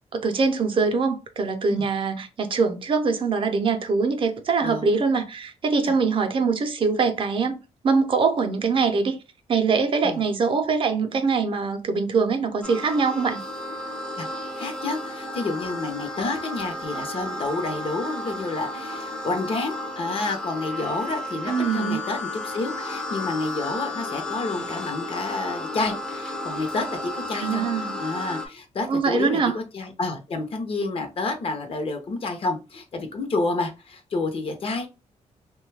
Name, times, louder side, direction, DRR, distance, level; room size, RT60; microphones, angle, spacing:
voice 1, 0.1-9.2 9.5-13.4 21.4-22.0 27.4-28.0 28.9-29.5, right 4 dB, 45° right, 0.5 m, -23 dB
voice 2, 4.6-5.1 5.8-6.0 10.0-10.2 14.2-27.6 28.0-34.9, left 3 dB, 50° left, 0.7 m, -29 dB
sound 1, 12.6-28.5, left 1 dB, 5° left, 0.5 m, -33 dB
2.7 x 2.2 x 3.2 m
cardioid pair, 130°, 13 cm